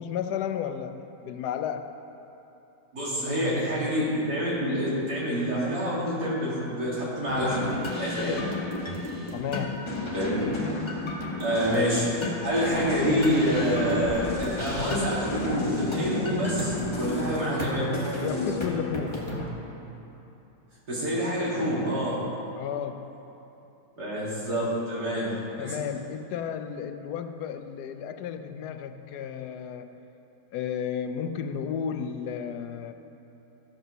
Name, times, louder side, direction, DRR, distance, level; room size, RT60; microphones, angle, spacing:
voice 1, 0.0-2.0 3.2-3.3 8.2-8.6 9.3-9.9 18.2-19.4 22.5-23.2 25.6-30.0 30.5-32.9, left 8 dB, 80° left, 9 dB, 1.2 m, -33 dB
voice 2, 2.9-7.6 7.9-8.4 10.1-10.5 11.4-12.1 12.4-17.9 20.9-22.2 24.0-25.3 25.6-25.7, equal, 80° right, -8 dB, 3.4 m, -27 dB
sound 1, 7.2-19.5, left 2 dB, 20° left, 1.2 m, -32 dB
Sliding door, 12.4-15.4, right 2 dB, 35° right, 1.5 m, -37 dB
14.0 x 5.4 x 6.2 m, 3.0 s
omnidirectional pair, 1.7 m